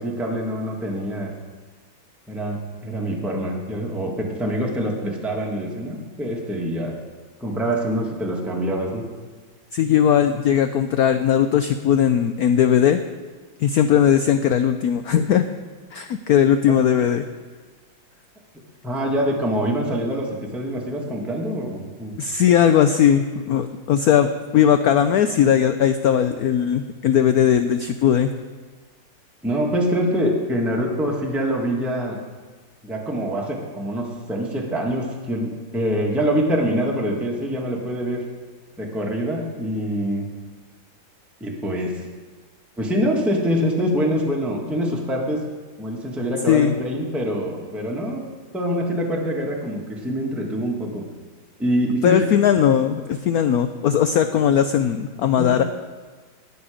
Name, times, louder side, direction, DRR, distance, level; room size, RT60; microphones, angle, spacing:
voice 1, 0.0-1.3 2.3-7.0 7.4-9.0 16.7-16.8 18.8-20.3 20.5-22.2 29.4-32.2 32.8-38.2 38.8-40.2 41.4-42.1 42.8-45.4 45.8-48.2 48.5-51.0 51.6-52.2 55.4-55.6, equal, ahead, -1 dB, 1.4 m, -25 dB
voice 2, 9.7-13.0 13.6-15.4 15.9-17.2 22.2-24.3 24.5-28.3 46.5-46.7 52.0-55.6, left 9 dB, 85° left, 9 dB, 0.8 m, -18 dB
19.0 x 6.9 x 5.0 m, 1.4 s
omnidirectional pair, 2.2 m